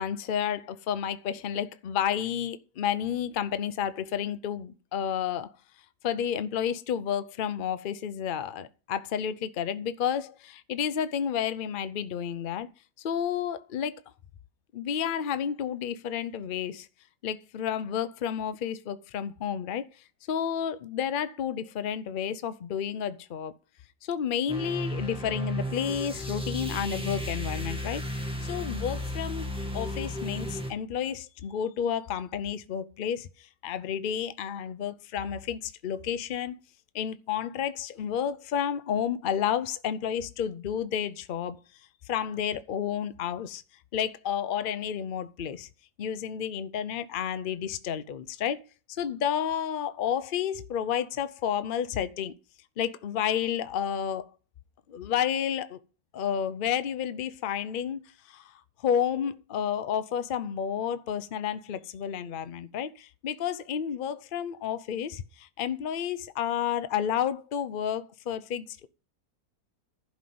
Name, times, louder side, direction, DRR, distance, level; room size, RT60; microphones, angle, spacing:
voice 1, 0.0-5.5 6.0-12.7 13.0-14.0 14.7-16.9 17.2-19.9 20.3-23.5 24.0-36.6 36.9-41.6 42.1-43.6 43.9-45.7 46.0-48.6 49.0-52.3 52.8-54.3 54.9-55.8 56.1-58.5 58.8-68.9, left 8 dB, 85° left, 0.4 m, -31 dB
sound 1, 24.5-30.7, left 1 dB, 5° right, 1.6 m, -34 dB
11.5 x 5.5 x 7.7 m
omnidirectional pair, 1.8 m